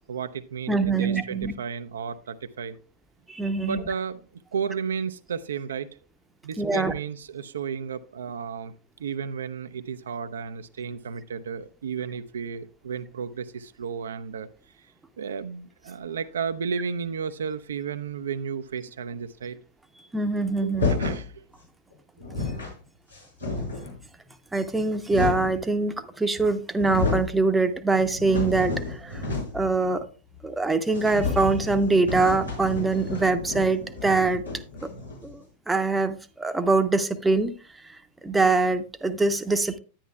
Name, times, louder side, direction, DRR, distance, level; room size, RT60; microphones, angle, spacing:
voice 1, 0.1-2.8 3.6-4.2 4.5-5.9 6.4-8.7 9.0-14.5 15.2-19.6 20.6-20.7 21.0-21.4, right 6 dB, 65° right, 0.5 m, -33 dB
voice 2, 0.7-1.5 3.3-3.8 6.6-6.9 20.1-20.9 24.5-29.3 29.5-30.0 30.4-34.4 34.8-34.9 35.2-37.5 37.8-39.8, right 3 dB, 10° right, 0.7 m, -24 dB
sound 1, 20.7-21.3 21.9-22.0 22.2-22.7 23.1-24.0 24.7-25.6 26.4-26.5 26.7-27.3 27.7-29.7 30.0-30.1 30.4-30.5 30.9-35.4, left 3 dB, 90° left, 5.5 m, -30 dB
10.0 x 10.0 x 2.3 m
figure-of-eight pair, 90°, 0 cm